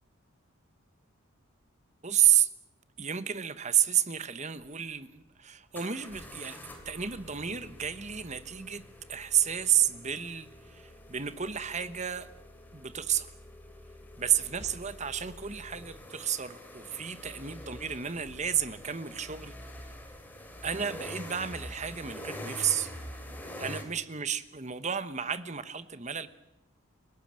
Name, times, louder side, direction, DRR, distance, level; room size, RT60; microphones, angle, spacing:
voice 1, 2.0-2.5 3.0-6.6 6.8-8.8 9.1-12.3 12.7-13.3 14.2-19.5 20.6-22.9 23.6-26.3, right 9 dB, 30° right, 13 dB, 1.1 m, -31 dB
sound 1, 4.6-4.7 5.7-23.8, left 1 dB, 10° left, 3.2 m, -46 dB
30.0 x 17.5 x 7.6 m, 0.92 s
head